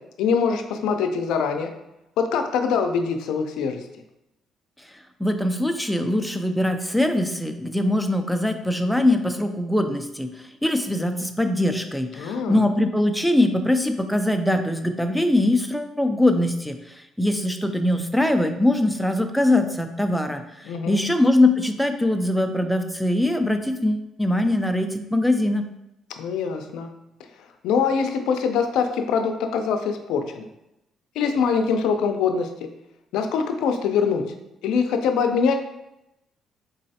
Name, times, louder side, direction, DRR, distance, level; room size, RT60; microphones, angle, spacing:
voice 1, 0.2-1.7 2.3-3.8 12.2-12.6 20.6-21.0 26.2-26.9 27.6-30.4 31.2-32.7 33.1-34.2 34.6-35.6, left 6 dB, 85° left, 6 dB, 0.4 m, -23 dB
voice 2, 5.2-25.6, left 1 dB, ahead, 6 dB, 0.4 m, -22 dB
3.8 x 3.1 x 2.8 m, 0.87 s
cardioid pair, 95°, 0 cm